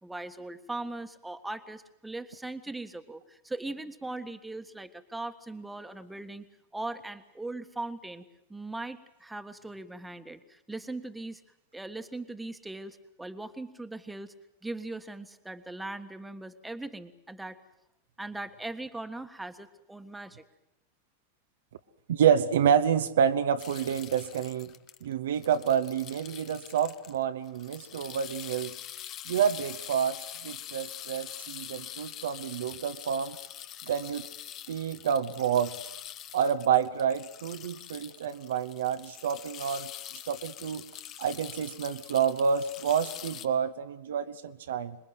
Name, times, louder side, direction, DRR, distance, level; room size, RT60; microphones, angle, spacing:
voice 1, 0.0-6.4 6.7-8.2 8.5-11.4 11.7-14.3 14.6-17.6 18.2-20.4, right 2 dB, 5° right, 8 dB, 1.6 m, -39 dB
voice 2, 22.1-24.7 25.0-28.7 29.3-33.4 33.9-34.3 34.7-35.8 36.3-39.9 40.3-40.8 41.2-45.0, right 8 dB, 60° right, 9 dB, 1.0 m, -28 dB
sound 1, 23.6-27.2 27.4-43.5, left 11 dB, 35° left, 1.2 m, -44 dB
26.5 x 21.5 x 8.1 m, 0.86 s
figure-of-eight pair, 90°, 0 cm